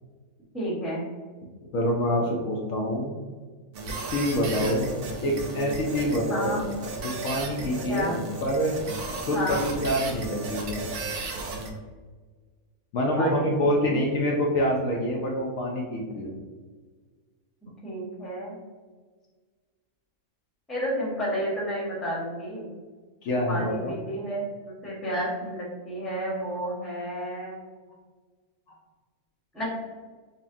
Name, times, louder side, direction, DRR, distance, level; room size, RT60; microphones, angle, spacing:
voice 1, 0.5-1.1 6.3-6.6 7.9-8.2 9.3-9.6 13.2-14.1 17.6-18.5 20.7-22.7 23.5-24.4 24.8-27.6 29.5-29.6, equal, ahead, -6 dB, 0.8 m, -31 dB
voice 2, 1.7-3.2 4.1-4.9 5.2-6.6 7.0-8.1 8.4-8.8 9.3-10.8 12.9-16.4 23.2-24.0, equal, 70° left, -1 dB, 1.0 m, -26 dB
sound 1, 3.7-11.7, right 3 dB, 85° right, 1.2 m, -34 dB
5.5 x 2.1 x 2.6 m, 1.4 s
omnidirectional pair, 1.6 m